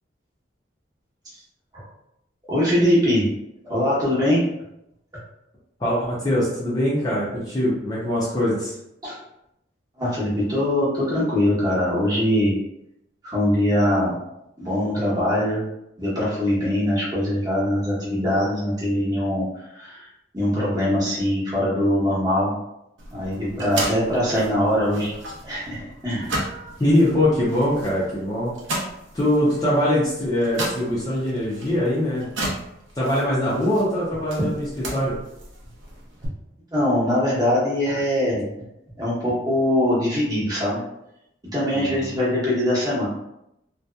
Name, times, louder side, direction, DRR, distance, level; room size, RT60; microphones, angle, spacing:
voice 1, 2.5-3.3 3.6-4.4 9.0-9.2 10.0-12.6 13.2-14.1 14.6-15.6 16.0-20.1 20.3-22.5 23.1-25.1 25.4-26.3 34.4-34.5 36.7-38.4 39.0-40.8 41.5-43.1, left 1 dB, 20° right, -8 dB, 0.9 m, -22 dB
voice 2, 5.8-8.7 26.8-28.5 29.1-32.3 33.0-35.2 41.7-42.1, left 1 dB, 20° left, -7 dB, 0.5 m, -22 dB
sound 1, 23.0-36.3, right 1 dB, 85° right, 0.6 m, -35 dB
2.7 x 2.3 x 2.2 m, 0.82 s
head